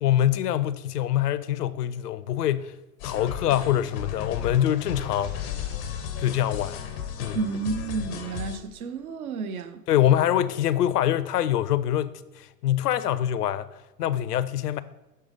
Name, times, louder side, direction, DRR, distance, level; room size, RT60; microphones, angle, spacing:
voice 1, 0.0-2.7 3.0-5.3 6.2-6.8 7.2-7.4 9.9-14.8, left 11 dB, 70° left, 0.5 m, -24 dB
sound 1, 3.0-8.6, left 8 dB, 20° left, 0.5 m, -34 dB
voice 2, 7.3-9.8, right 4 dB, 60° right, 0.7 m, -31 dB
6.7 x 3.2 x 4.9 m
hypercardioid pair, 115°, 49 cm